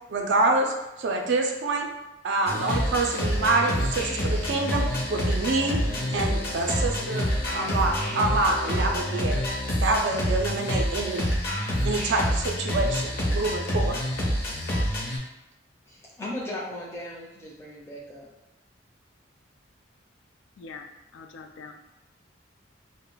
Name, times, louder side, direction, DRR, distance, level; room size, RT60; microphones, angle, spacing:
voice 1, 0.1-1.9 2.2-5.8 6.1-9.3 9.8-11.3 11.8-14.0, right 2 dB, 65° right, 2 dB, 0.4 m, -26 dB
sound 1, 2.5-15.2, equal, 50° left, 0.7 m, -27 dB
voice 2, 15.9-18.3, left 1 dB, 15° left, -4 dB, 0.5 m, -37 dB
voice 3, 20.6-21.7, left 4 dB, 75° left, 6 dB, 0.3 m, -43 dB
2.2 x 2.0 x 3.8 m, 0.95 s
head